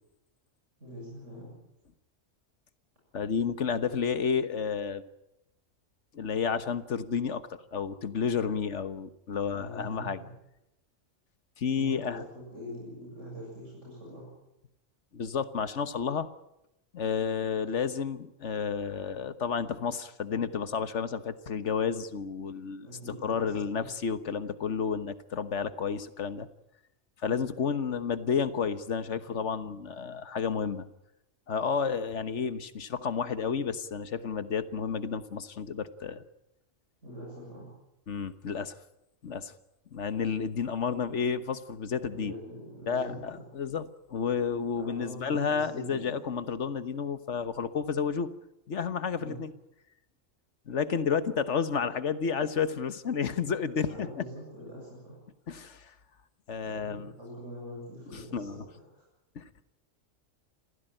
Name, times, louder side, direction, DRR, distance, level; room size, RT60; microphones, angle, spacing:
voice 1, 0.8-1.5 9.5-10.3 11.8-14.3 22.8-23.9 37.0-37.7 42.1-43.4 44.7-46.3 49.1-49.4 53.8-55.2 56.6-59.0, equal, 65° right, -3 dB, 7.8 m, -44 dB
voice 2, 3.1-5.1 6.1-10.2 11.6-12.2 15.1-16.3 16.9-26.5 27.2-30.9 31.5-36.2 38.1-38.8 39.2-39.5 39.9-42.3 42.9-48.3 48.7-49.5 50.7-54.2 55.5-55.9 56.5-57.1 58.1-58.6 59.3-59.4, left 6 dB, 65° left, 12 dB, 1.5 m, -31 dB
28.0 x 15.5 x 9.0 m, 0.86 s
omnidirectional pair, 1.3 m